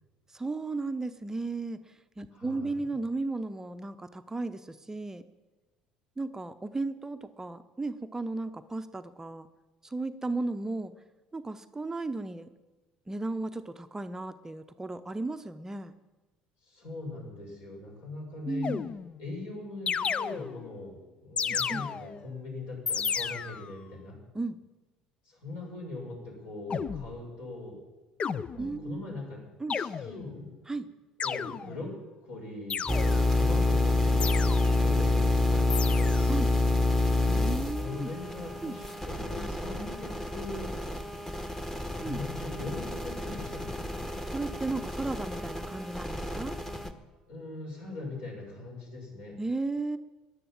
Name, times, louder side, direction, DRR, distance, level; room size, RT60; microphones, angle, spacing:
voice 1, 0.3-5.2 6.2-9.5 9.8-10.9 11.3-12.5 13.1-15.9 18.5-18.9 21.5-21.9 24.3-24.6 28.6-29.0 29.6-29.8 30.7-30.9 36.3-36.5 37.3-38.1 38.6-38.8 42.0-42.2 44.3-46.6 49.4-50.0, right 3 dB, 15° right, 9 dB, 0.7 m, -35 dB
voice 2, 2.3-2.8 16.6-18.8 19.2-24.2 25.2-27.8 28.5-29.4 29.7-30.5 31.2-32.0 32.2-36.2 37.8-40.8 41.9-44.0 47.3-49.4, left 2 dB, 65° left, -1 dB, 6.5 m, -41 dB
sound 1, 18.6-19.3 19.9-20.8 21.4-22.3 22.9-23.8 26.7-27.2 28.2-28.9 29.7-30.4 31.2-31.9 32.7-33.4 34.2-34.9 35.7-36.4, left 6 dB, 35° left, 0.5 m, -33 dB
sound 2, 32.9-46.9, left 2 dB, 10° left, 1.3 m, -28 dB
14.5 x 11.0 x 7.5 m, 1.2 s
figure-of-eight pair, 60°, 3 cm